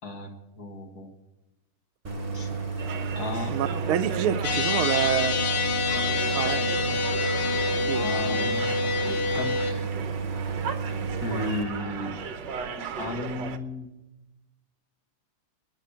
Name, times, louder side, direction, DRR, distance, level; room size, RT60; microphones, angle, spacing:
voice 1, 0.6-1.1 2.3-2.5 3.2-3.6 7.9-8.7 9.1-9.8 11.2-12.2 13.0-13.9, left 2 dB, 45° left, 4 dB, 1.9 m, -34 dB
Idling, 2.0-11.6, right 5 dB, 30° right, 1.5 m, -32 dB
sound 1, 2.8-13.6, right 6 dB, 60° right, 1.4 m, -37 dB
voice 2, 3.5-5.4 6.3-7.0 7.9-8.1, right 10 dB, 75° right, 11 dB, 1.5 m, -28 dB
sound 2, 4.4-9.7, left 5 dB, 75° left, 2.2 m, -27 dB
13.5 x 10.0 x 8.4 m, 1.0 s
omnidirectional pair, 2.4 m